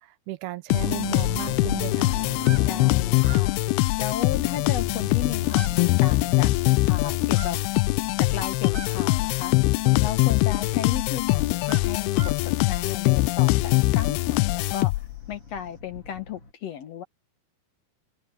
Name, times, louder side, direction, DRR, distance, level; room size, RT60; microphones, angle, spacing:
voice 1, 0.0-2.2, right 18 dB, 80° right, 2.8 m, -35 dB
sound 1, 0.7-15.3, left 22 dB, 85° left, 2.5 m, -23 dB
sound 2, 0.7-16.5, left 2 dB, 35° left, 5.1 m, -42 dB
sound 3, 1.0-15.8, right 8 dB, 30° right, 8.2 m, -49 dB
voice 2, 2.6-3.6 4.0-6.5 6.9-7.6 8.2-9.5 10.0-14.9 15.3-17.0, left 9 dB, 65° left, 1.7 m, -34 dB
omnidirectional pair, 4.4 m